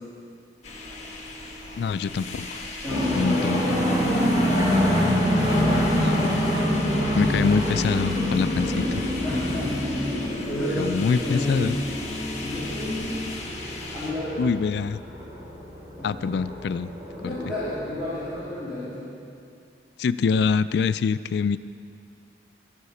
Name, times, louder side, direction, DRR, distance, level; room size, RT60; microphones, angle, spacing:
sound 1, 0.6-14.1, left 2 dB, 35° left, 1.6 m, -36 dB
voice 1, 1.8-2.6 3.1-3.6 5.9-6.4 7.1-9.0 10.8-11.8 14.4-15.0 16.0-16.9 17.2-17.4 20.0-21.6, left 5 dB, 70° left, 15 dB, 0.3 m, -25 dB
voice 2, 2.8-4.6 9.2-11.8 12.4-13.2 13.9-14.4 16.0-16.4 17.2-19.1, left 1 dB, 5° right, -16 dB, 3.1 m, -31 dB
sound 2, 2.9-18.5, equal, 25° right, 2.5 m, -26 dB
13.0 x 11.5 x 4.2 m, 2.4 s
head